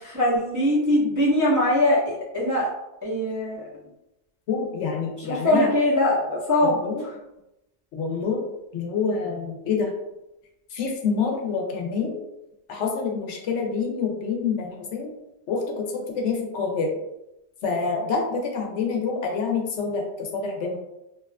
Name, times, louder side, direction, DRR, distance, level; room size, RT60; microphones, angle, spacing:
voice 1, 0.1-2.7 3.0-3.6 5.2-7.2, left 1 dB, 20° right, -9 dB, 0.5 m, -22 dB
voice 2, 4.5-5.7 6.6-7.0 7.9-8.4 8.7-9.9 10.7-12.2 12.7-15.1 15.5-16.9 17.6-20.8, left 5 dB, 80° left, 1 dB, 0.9 m, -27 dB
2.9 x 2.3 x 2.2 m, 0.91 s
omnidirectional pair, 1.2 m